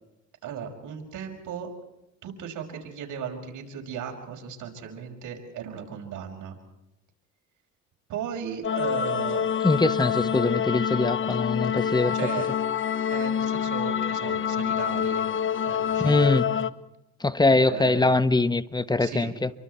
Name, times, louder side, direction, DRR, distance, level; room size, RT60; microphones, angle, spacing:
voice 1, 0.4-1.7 2.2-6.6 8.1-9.5 12.1-12.5 13.1-15.2 15.6-16.4 17.5-18.1 19.0-19.3, right 8 dB, 80° right, 5.5 m, -36 dB
sound 1, 8.6-16.7, left 8 dB, 40° left, 1.0 m, -26 dB
voice 2, 9.6-12.2 16.0-16.5 17.2-19.5, left 3 dB, 15° left, 1.3 m, -23 dB
28.0 x 24.0 x 4.5 m
cardioid pair, 90°, 30 cm